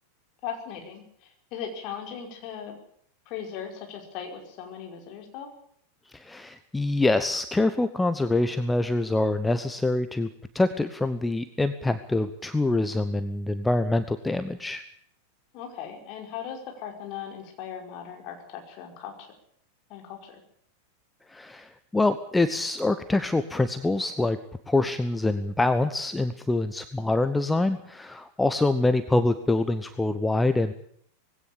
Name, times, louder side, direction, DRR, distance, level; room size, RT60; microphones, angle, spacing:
voice 1, 0.4-2.8 3.3-5.5 15.5-19.3 19.9-20.4, left 8 dB, 40° left, 3 dB, 5.3 m, -38 dB
voice 2, 6.1-10.3 10.5-14.8 21.3-24.4 24.7-30.7, left 2 dB, 10° left, 10 dB, 1.0 m, -25 dB
20.0 x 17.0 x 8.7 m, 0.65 s
figure-of-eight pair, 90°, 0 cm